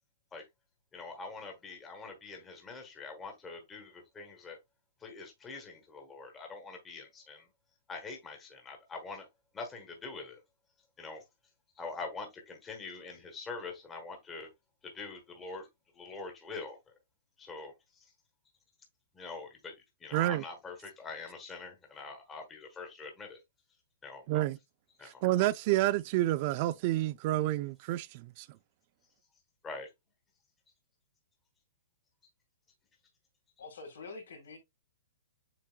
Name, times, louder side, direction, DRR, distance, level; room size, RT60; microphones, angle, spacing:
voice 1, 0.9-4.6 5.0-7.5 7.9-9.3 9.5-10.4 11.0-11.2 11.8-14.5 14.8-15.7 15.9-16.8 17.4-18.0 19.1-19.7 20.0-23.4 24.0-24.2 25.0-25.2 29.6-29.9, left 4 dB, 15° left, 1.3 m, -44 dB
voice 2, 20.1-20.4 24.3-24.6 25.0-28.5, right 15 dB, 40° right, 0.3 m, -29 dB
voice 3, 33.6-34.6, left 3 dB, 90° left, 2.7 m, -46 dB
7.6 x 3.0 x 2.3 m
hypercardioid pair, 155°, 0 cm